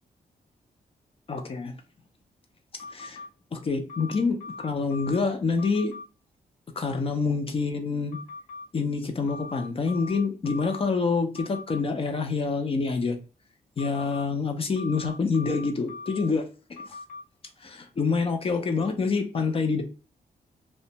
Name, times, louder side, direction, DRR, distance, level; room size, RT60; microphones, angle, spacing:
voice 1, 1.3-1.7 2.7-3.2 3.5-5.9 6.8-8.2 8.7-13.2 13.8-16.9 17.6-19.8, left 4 dB, 40° left, 0.5 m, -27 dB
sound 1, 2.8-3.3 3.9-5.2 5.6-6.0 8.1-8.7 9.3-10.9 11.3-11.8 13.8-14.2 14.8-16.3 16.8-17.2, left 3 dB, 55° left, 1.0 m, -41 dB
2.4 x 2.2 x 2.8 m
cardioid pair, 105°, 15 cm